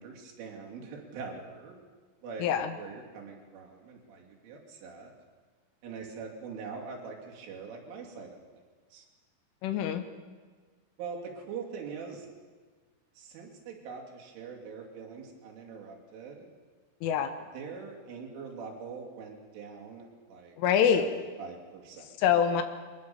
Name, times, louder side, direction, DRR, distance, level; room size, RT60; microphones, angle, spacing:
voice 1, 0.0-1.7 2.2-2.5 2.7-5.1 5.8-8.4 8.9-9.0 11.0-12.3 13.2-16.4 17.5-20.5 20.9-21.1 21.4-22.1, right 5 dB, 70° right, 0 dB, 5.1 m, -43 dB
voice 2, 2.4-2.7 9.6-10.0 17.0-17.3 20.6-21.1 22.2-22.6, left 8 dB, 75° left, 9 dB, 3.5 m, -25 dB
23.5 x 20.5 x 7.0 m, 1.5 s
omnidirectional pair, 6.0 m